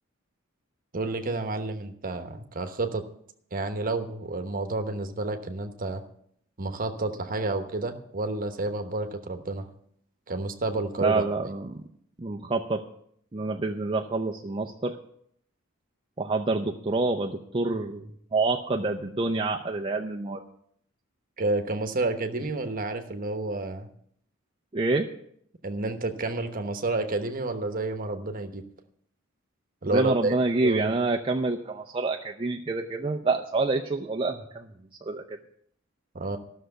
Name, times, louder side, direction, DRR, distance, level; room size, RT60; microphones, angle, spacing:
voice 1, 0.9-3.0 3.5-6.0 6.6-9.7 10.3-11.2 21.4-23.9 25.6-28.6 29.8-30.3 30.6-31.0 36.1-36.4, right 2 dB, 45° right, 7 dB, 1.1 m, -30 dB
voice 2, 11.0-11.8 12.2-12.8 13.3-15.0 16.2-20.4 24.7-25.1 29.9-34.7 35.0-35.4, right 3 dB, 25° right, 1 dB, 0.6 m, -27 dB
13.5 x 6.4 x 7.9 m, 0.68 s
head